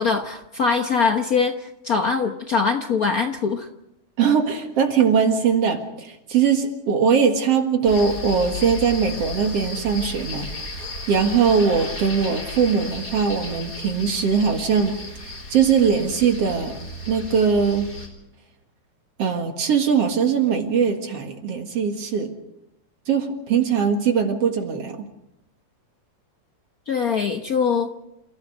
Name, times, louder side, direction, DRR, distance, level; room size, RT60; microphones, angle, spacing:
voice 1, 0.0-3.7 26.9-27.9, left 5 dB, 80° left, 5 dB, 0.8 m, -22 dB
voice 2, 4.2-10.7 11.1-14.9 15.2-16.7 17.1-17.9 19.2-22.4 23.1-25.0, right 6 dB, 60° right, 5 dB, 2.7 m, -21 dB
sound 1, 7.8-18.1, left 2 dB, 30° left, 5.4 m, -34 dB
29.5 x 16.0 x 6.5 m, 0.85 s
omnidirectional pair, 3.3 m